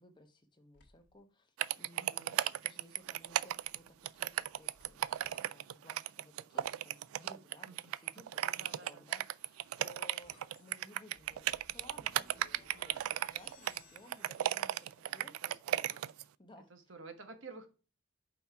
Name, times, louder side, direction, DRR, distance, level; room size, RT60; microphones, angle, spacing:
voice 1, 0.0-16.7, left 1 dB, 20° left, 5 dB, 0.9 m, -59 dB
sound 1, 0.7-1.2 3.1-5.5 9.0-15.3, left 3 dB, 55° left, 1.4 m, -64 dB
sound 2, 1.6-16.2, right 12 dB, 85° right, 0.3 m, -35 dB
voice 2, 2.0-2.4 7.6-7.8 8.6-9.1 15.1-16.2 16.7-17.7, right 3 dB, 65° right, 7 dB, 1.1 m, -52 dB
5.6 x 4.3 x 4.6 m, 0.32 s
head